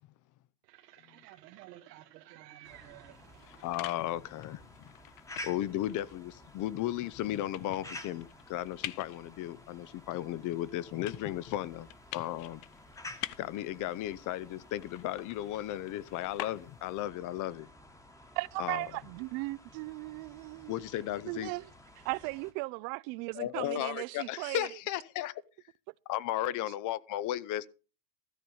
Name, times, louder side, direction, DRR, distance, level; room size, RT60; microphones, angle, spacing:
voice 1, 0.6-3.7, right 14 dB, 80° right, 1.4 m, -53 dB
sound 1, 2.6-22.5, left 1 dB, 5° left, 1.2 m, -52 dB
sound 2, 3.1-17.1, left 16 dB, 70° left, 0.9 m, -48 dB
voice 2, 3.6-4.8 5.4-12.6 13.4-17.7 18.6-18.8 20.7-21.5 23.3-25.3 26.1-27.7, left 13 dB, 40° left, 0.7 m, -35 dB
voice 3, 18.4-20.9 21.2-21.7 22.0-24.7, right 25 dB, 55° right, 0.6 m, -37 dB
13.5 x 5.4 x 7.8 m
supercardioid pair, 130°, 48 cm